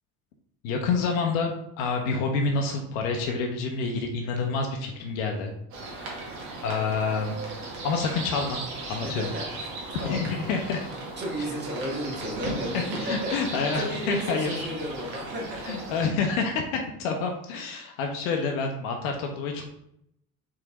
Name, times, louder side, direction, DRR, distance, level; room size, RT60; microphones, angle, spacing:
voice 1, 0.6-5.5 6.0-7.4 7.8-8.6 8.8-9.3 10.0-10.9 12.7-14.7 15.7-19.6, left 4 dB, 60° left, 2 dB, 0.8 m, -28 dB
sound 1, 5.7-16.1, right 3 dB, 60° right, 1.4 m, -36 dB
voice 2, 9.0-10.7 11.2-16.0, equal, 25° right, -3 dB, 1.6 m, -34 dB
4.8 x 3.6 x 2.9 m, 0.73 s
figure-of-eight pair, 55°, 45 cm